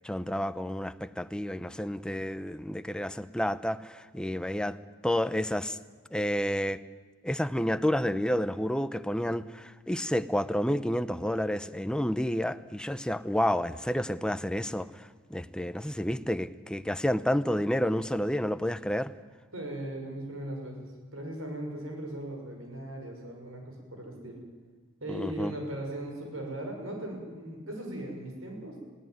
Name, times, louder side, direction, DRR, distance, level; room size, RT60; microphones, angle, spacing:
voice 1, 0.0-4.8 5.0-5.8 6.1-6.8 7.2-14.9 15.3-19.1 25.1-25.5, equal, 5° left, 0.6 m, -30 dB
voice 2, 19.5-24.4 25.0-28.8, right 1 dB, 80° right, 6.3 m, -38 dB
20.5 x 16.5 x 9.3 m
head